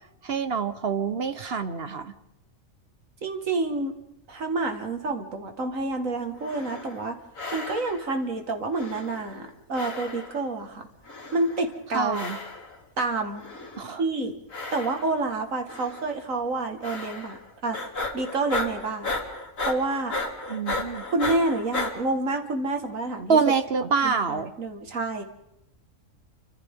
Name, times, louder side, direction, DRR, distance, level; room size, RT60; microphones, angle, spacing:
voice 1, 0.2-2.1 11.9-12.4 13.8-14.0 20.5-21.1 23.3-24.5, right 5 dB, 50° right, 10 dB, 1.2 m, -26 dB
voice 2, 3.2-4.0 4.3-7.2 7.5-10.9 11.3-12.2 13.0-13.4 14.0-14.3 14.7-17.4 17.6-17.8 18.1-19.1 19.6-20.2 21.1-23.4 23.8-25.2, right 3 dB, 75° right, 5 dB, 2.4 m, -28 dB
sound 1, 6.4-7.1 7.4-8.2 8.7-9.5 9.7-10.5 11.1-11.7 12.1-12.8 13.3-14.0 14.5-15.3 15.7-16.2 16.8-17.4 17.7-21.9, left 2 dB, 70° left, 3.1 m, -34 dB
28.5 x 25.0 x 3.8 m, 0.84 s
omnidirectional pair, 1.4 m